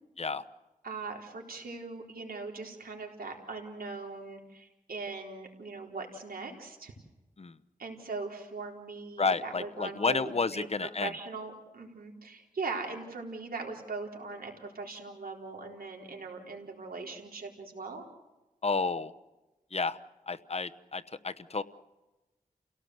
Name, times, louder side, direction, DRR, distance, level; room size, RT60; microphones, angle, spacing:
voice 1, 0.8-6.9 7.8-18.1, right 3 dB, 90° right, 1 dB, 4.0 m, -40 dB
voice 2, 9.2-11.1 18.6-19.1 19.7-20.0 20.3-21.6, left 4 dB, 45° left, 10 dB, 1.0 m, -31 dB
29.5 x 17.5 x 7.9 m, 1.1 s
wide cardioid pair, 85°, 15 cm